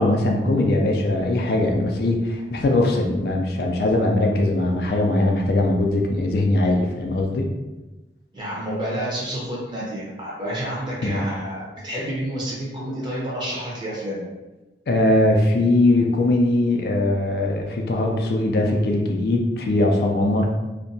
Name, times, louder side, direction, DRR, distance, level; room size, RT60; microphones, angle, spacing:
voice 1, 0.0-7.5 11.0-11.2 14.9-20.5, left 2 dB, 60° left, 1 dB, 0.3 m, -20 dB
voice 2, 8.3-14.2, equal, 25° right, -5 dB, 0.7 m, -29 dB
2.6 x 2.1 x 2.6 m, 1.1 s
head